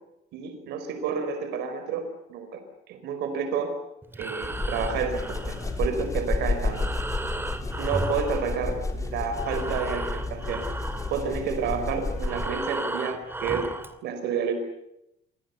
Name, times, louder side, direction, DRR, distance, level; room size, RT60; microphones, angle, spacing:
voice 1, 0.3-2.6 2.9-3.7 4.2-6.8 7.8-10.7 11.1-13.7 14.0-14.5, right 6 dB, 80° right, 8 dB, 4.9 m, -30 dB
Breathing, 4.0-9.0 9.3-14.0, right 2 dB, 15° right, 2.4 m, -35 dB
sound 1, 4.4-12.7, left 3 dB, 20° left, 3.7 m, -31 dB
28.0 x 24.5 x 7.1 m, 0.84 s
cardioid pair, 110°, 17 cm